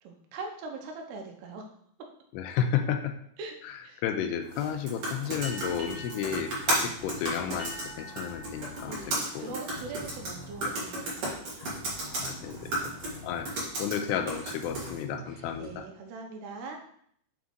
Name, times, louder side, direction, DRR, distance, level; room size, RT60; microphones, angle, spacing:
voice 1, 0.0-1.7 3.4-3.5 3.8-4.0 8.9-11.5 15.3-16.8, right 3 dB, 85° right, 2 dB, 2.9 m, -41 dB
voice 2, 2.3-3.1 4.0-9.6 10.6-10.7 12.2-12.9 13.2-15.8, left 8 dB, 85° left, 7 dB, 2.7 m, -32 dB
sound 1, 4.5-15.0, right 1 dB, 45° right, 2.2 m, -35 dB
sound 2, 5.3-15.8, left 1 dB, 70° left, 2.1 m, -48 dB
sound 3, 5.4-10.5, left 1 dB, 65° right, 2.7 m, -46 dB
7.2 x 3.6 x 3.8 m, 0.66 s
omnidirectional pair, 4.7 m